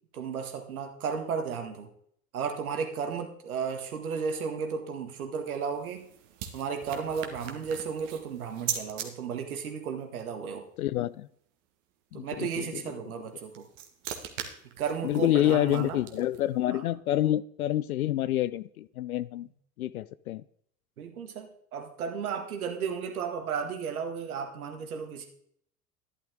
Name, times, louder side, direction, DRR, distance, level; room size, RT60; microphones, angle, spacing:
voice 1, 0.1-1.9 2.3-6.0 6.5-10.7 12.1-13.7 14.8-16.0 16.7-16.8 21.0-25.3, right 6 dB, 70° right, 5 dB, 2.0 m, -34 dB
sound 1, 5.4-9.1 13.2-16.6, right 9 dB, 55° right, 1.8 m, -40 dB
voice 2, 10.8-11.3 12.1-12.8 15.0-19.5 19.8-20.4, left 13 dB, 70° left, 18 dB, 0.5 m, -28 dB
11.5 x 11.0 x 3.7 m, 0.66 s
figure-of-eight pair, 80°, 45 cm